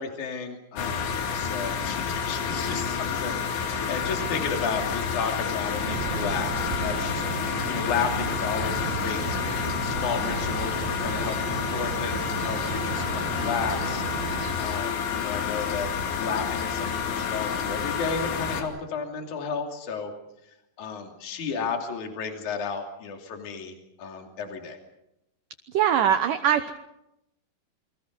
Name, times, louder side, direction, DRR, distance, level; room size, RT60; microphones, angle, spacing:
voice 1, 0.0-9.4 9.8-14.0 14.6-15.9 16.2-20.1 20.8-24.8, left 5 dB, 50° left, 4 dB, 3.9 m, -33 dB
sound 1, 0.8-18.6, left 7 dB, 80° left, 4.6 m, -29 dB
sound 2, 5.8-14.5, right 6 dB, 85° right, 3.8 m, -34 dB
voice 2, 25.7-26.7, right 9 dB, 70° right, 9 dB, 2.1 m, -22 dB
28.5 x 24.0 x 5.4 m, 0.86 s
omnidirectional pair, 4.9 m